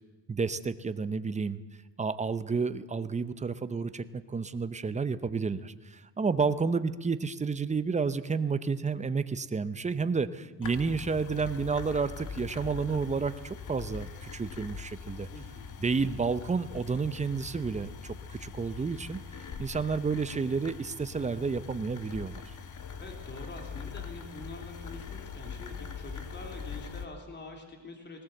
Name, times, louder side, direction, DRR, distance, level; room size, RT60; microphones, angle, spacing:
voice 1, 0.3-1.6 2.0-15.3 15.8-19.2 19.6-22.4, right 5 dB, 15° right, 13 dB, 0.7 m, -31 dB
sound 1, 10.6-27.1, left 6 dB, 45° left, 1.5 m, -42 dB
voice 2, 15.3-15.8 23.0-28.2, left 2 dB, 25° left, 3 dB, 3.2 m, -45 dB
19.0 x 18.5 x 7.8 m, 1.3 s
cardioid pair, 145°, 43 cm